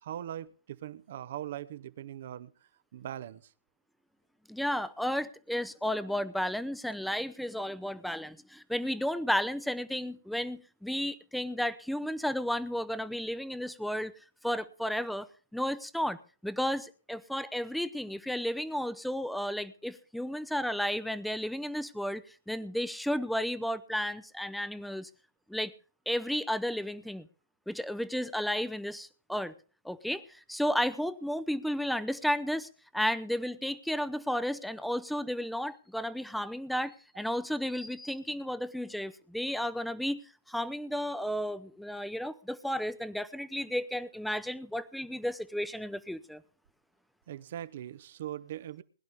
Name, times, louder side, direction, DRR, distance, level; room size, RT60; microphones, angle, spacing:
voice 1, 0.0-2.5 2.9-3.5 47.3-48.8, right 11 dB, 50° right, 17 dB, 0.7 m, -40 dB
voice 2, 4.5-14.1 14.4-15.3 15.5-16.2 16.4-25.1 25.5-25.7 26.1-27.3 27.7-29.5 29.8-40.2 40.5-46.4, equal, ahead, 15 dB, 0.7 m, -33 dB
21.0 x 11.0 x 3.6 m, 0.38 s
figure-of-eight pair, 130°, 0 cm